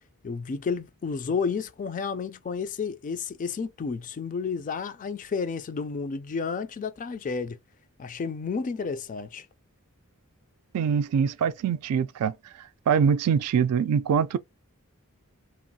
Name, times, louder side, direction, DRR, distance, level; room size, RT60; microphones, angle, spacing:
voice 1, 0.2-7.6 8.0-9.5, left 5 dB, 35° left, 0.3 m, -31 dB
voice 2, 10.7-12.3 12.9-14.4, right 7 dB, 85° right, 0.3 m, -23 dB
3.0 x 2.3 x 2.7 m
head